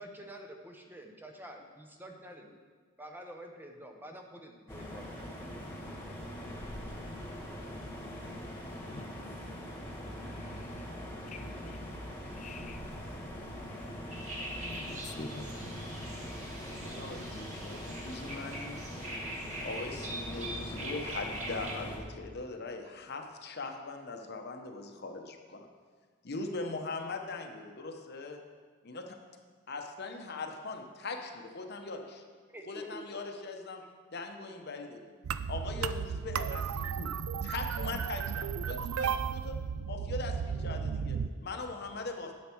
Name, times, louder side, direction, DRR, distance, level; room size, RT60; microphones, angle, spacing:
voice 1, 0.0-2.6 3.0-5.2 32.5-33.3, right 1 dB, 10° right, 3 dB, 0.8 m, -48 dB
sound 1, 4.7-22.0, equal, 10° left, 1.5 m, -42 dB
voice 2, 8.9-9.2 10.3-10.9 11.3-12.0 12.3-12.8 13.9-14.0 14.7-15.8, left 3 dB, 35° left, 8 dB, 0.5 m, -47 dB
sound 2, 14.1-21.7, right 1 dB, 35° right, 1.8 m, -42 dB
voice 3, 16.7-18.8 19.6-25.7 26.2-28.4 28.8-29.2 29.7-32.2 32.6-33.9 34.1-35.0 35.5-37.1 37.4-39.6 39.9-42.3, left 3 dB, 50° left, 4 dB, 0.9 m, -40 dB
sound 3, 35.2-41.3, right 7 dB, 80° right, 0.4 m, -34 dB
10.5 x 7.5 x 4.6 m, 1.5 s
head